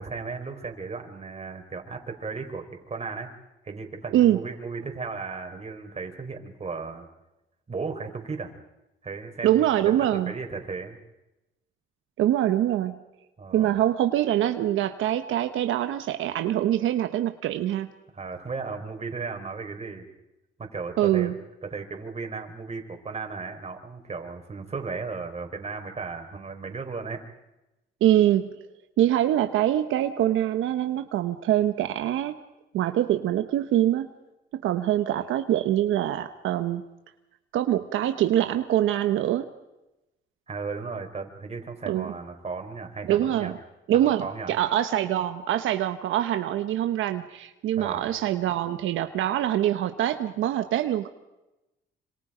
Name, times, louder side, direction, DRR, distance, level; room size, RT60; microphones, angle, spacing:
voice 1, 0.0-3.3 3.6-7.1 7.7-8.5 9.0-11.0 13.4-13.7 18.1-20.1 20.6-21.3 21.6-27.2 40.5-43.5 43.9-44.5 47.8-48.0, right 4 dB, 30° right, 5 dB, 4.5 m, -35 dB
voice 2, 9.4-10.3 12.2-13.0 13.5-17.9 21.0-21.3 28.0-28.5 29.0-32.4 32.7-34.1 34.5-36.8 37.5-39.5 41.9-42.1 43.0-43.5 43.9-51.1, right 12 dB, 80° right, 8 dB, 1.1 m, -24 dB
27.0 x 26.5 x 5.1 m, 0.96 s
cardioid pair, 90°, 20 cm